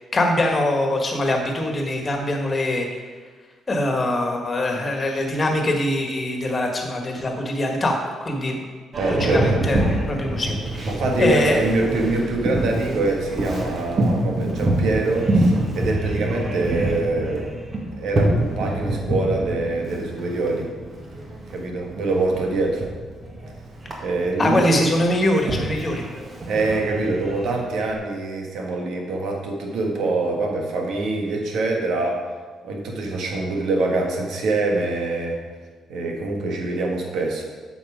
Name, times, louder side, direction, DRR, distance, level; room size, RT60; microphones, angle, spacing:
voice 1, 0.1-2.9 3.7-8.6 9.1-10.9 11.2-11.6 24.4-26.1, left 1 dB, 30° left, 2 dB, 1.6 m, -23 dB
Boat Water vehicle, 8.9-27.9, right 1 dB, 40° right, 1.8 m, -26 dB
voice 2, 8.9-9.7 10.8-17.5 18.0-20.7 21.5-22.9 24.0-24.8 26.5-32.2 32.6-35.4 35.9-37.4, right 2 dB, 75° right, 1 dB, 1.5 m, -24 dB
8.3 x 6.0 x 5.0 m, 1.4 s
cardioid pair, 90°, 0 cm